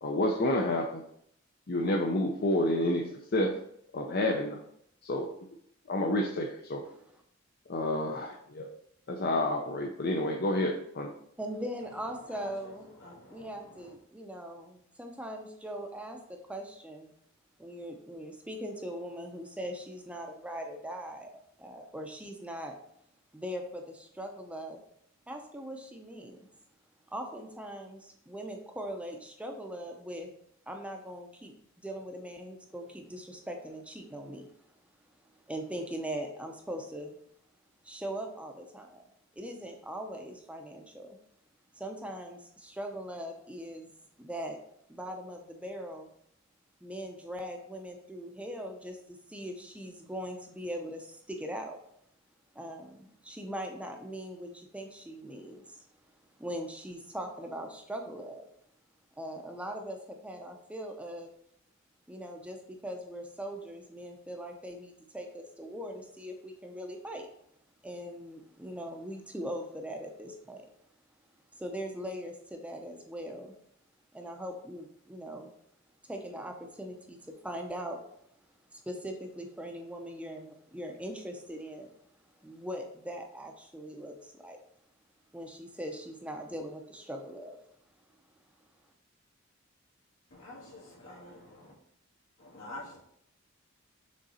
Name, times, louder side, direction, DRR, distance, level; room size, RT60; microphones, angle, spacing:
voice 1, 0.0-1.0 1.7-3.5 3.9-4.6 5.0-5.3 5.9-6.8 7.7-8.7 9.1-11.1, left 1 dB, 50° left, 1 dB, 0.6 m, -29 dB
voice 2, 11.4-12.9 13.3-17.1 17.6-21.3 21.6-22.7 23.3-24.8 25.3-26.4 27.1-30.3 30.7-34.5 35.5-37.2 37.8-39.0 39.3-41.2 41.7-43.9 44.2-44.6 44.9-46.1 46.8-51.8 52.5-55.9 56.4-58.5 59.2-61.3 62.1-67.3 67.8-70.7 71.6-73.5 74.1-75.5 76.1-78.0 78.7-81.9 82.4-84.6 85.3-87.6, equal, 5° right, 3 dB, 0.6 m, -40 dB
voice 3, 12.3-13.9 90.3-91.7 92.4-93.0, left 2 dB, 80° left, -4 dB, 2.5 m, -48 dB
6.4 x 3.9 x 4.2 m, 0.71 s
head